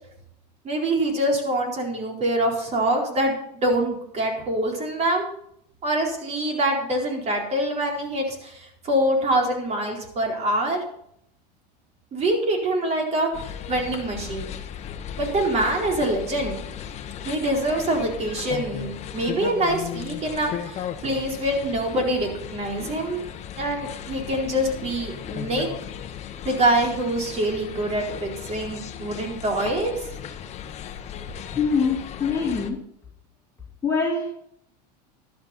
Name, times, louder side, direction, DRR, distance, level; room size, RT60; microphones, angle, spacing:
voice 1, 0.6-3.3 3.6-5.3 5.8-10.8 12.1-13.3 13.7-14.5 15.2-16.6 17.2-23.3 23.6-25.7 26.4-29.9, right 1 dB, 30° right, 1 dB, 4.1 m, -25 dB
sound 1, 13.3-32.7, left 9 dB, 35° left, 1.2 m, -36 dB
voice 2, 31.5-32.8 33.8-34.3, left 5 dB, 15° left, -4 dB, 2.7 m, -24 dB
12.5 x 12.0 x 4.3 m, 0.72 s
supercardioid pair, 130°, 21 cm